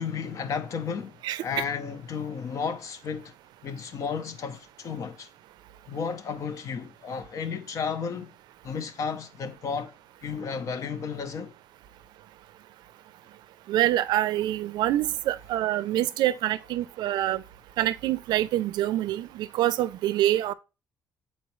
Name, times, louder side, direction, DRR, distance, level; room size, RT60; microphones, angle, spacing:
voice 1, 0.0-3.3 3.6-5.3 5.9-8.3 8.6-9.9 10.2-11.5, left 6 dB, 50° left, 0.7 m, -33 dB
voice 2, 13.7-17.4 17.8-20.5, right 13 dB, 90° right, 0.4 m, -26 dB
7.9 x 4.3 x 3.1 m
cardioid pair, 165°, 7 cm